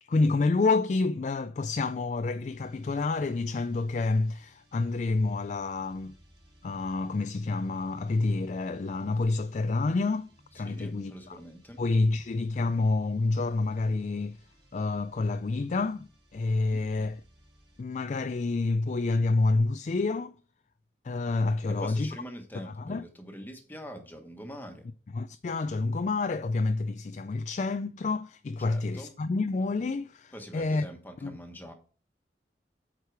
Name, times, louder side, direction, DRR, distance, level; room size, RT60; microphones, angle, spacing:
voice 1, 0.0-6.1 6.6-10.3 10.5-11.4 11.8-14.4 14.7-17.2 17.8-20.4 21.0-22.2 22.7-23.0 25.1-30.8 31.2-31.4, left 3 dB, 40° left, 0.3 m, -28 dB
sound 1, 2.5-17.9, right 1 dB, 25° right, 2.9 m, -61 dB
voice 2, 10.6-11.8 16.7-16.8 21.7-24.8 28.6-29.1 30.3-31.7, equal, 10° left, 1.3 m, -44 dB
8.2 x 4.8 x 4.7 m
head